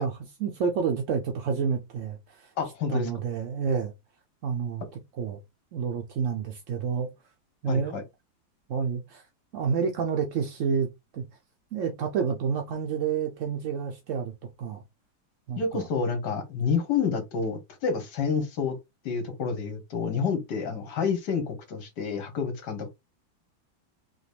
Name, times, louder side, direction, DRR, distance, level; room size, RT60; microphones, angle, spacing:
voice 1, 0.0-2.2 2.9-3.9 4.4-4.8 5.2-5.4 5.7-7.1 7.6-8.1 8.7-9.2 9.5-10.9 11.1-11.2 11.7-14.3 14.6-14.8 15.5-15.9, right 6 dB, 75° right, 0.7 m, -29 dB
voice 2, 2.6-3.1 7.7-8.0 15.6-18.8 19.0-22.9, left 5 dB, 65° left, 1.5 m, -29 dB
4.1 x 2.9 x 3.3 m
omnidirectional pair, 2.1 m